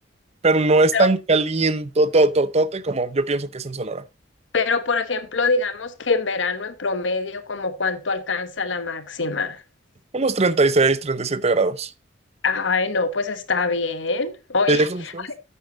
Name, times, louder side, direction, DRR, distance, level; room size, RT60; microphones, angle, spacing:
voice 1, 0.4-4.0 10.1-11.9 14.7-15.3, right 3 dB, 35° right, 0.7 m, -20 dB
voice 2, 4.5-9.6 12.4-15.4, left 4 dB, 70° left, 1.0 m, -24 dB
9.3 x 8.3 x 3.8 m
head